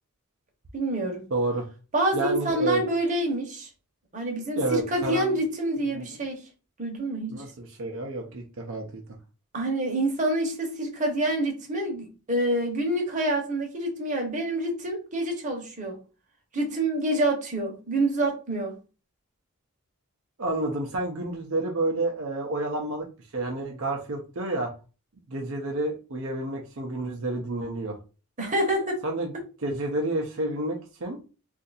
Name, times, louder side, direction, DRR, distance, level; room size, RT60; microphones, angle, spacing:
voice 1, 0.7-1.2 1.9-3.7 4.1-6.4 6.8-7.4 9.5-16.0 16.5-18.8 28.4-29.0, right 1 dB, 35° right, 0.9 m, -27 dB
voice 2, 1.3-1.7 2.1-2.8 4.5-5.4 5.9-6.0 7.3-9.0 20.4-23.1 23.3-24.7 25.3-28.0 29.0-29.3 29.6-31.2, right 2 dB, 65° right, 0.6 m, -29 dB
2.7 x 2.5 x 3.9 m
head